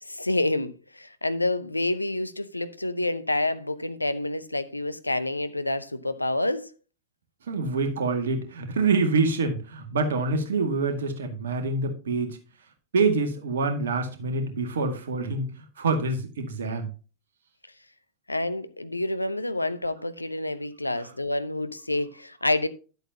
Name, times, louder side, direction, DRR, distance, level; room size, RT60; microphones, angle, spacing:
voice 1, 0.0-6.7 18.3-22.7, left 2 dB, 85° left, 0.7 m, -28 dB
voice 2, 7.5-12.4 12.9-16.9, right 3 dB, 65° right, 1.9 m, -26 dB
10.5 x 8.0 x 2.8 m
figure-of-eight pair, 90°, 0 cm